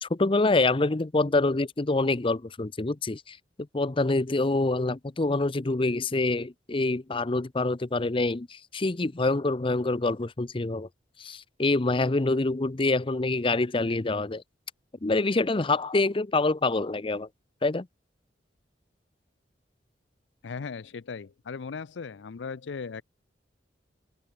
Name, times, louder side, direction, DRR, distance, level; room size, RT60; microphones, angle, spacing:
voice 1, 0.0-3.4 3.7-10.9 11.2-14.4 15.0-17.3 17.6-17.9, left 2 dB, 30° left, 0.7 m, -26 dB
voice 2, 20.4-23.0, left 5 dB, 80° left, 0.5 m, -37 dB
open air
head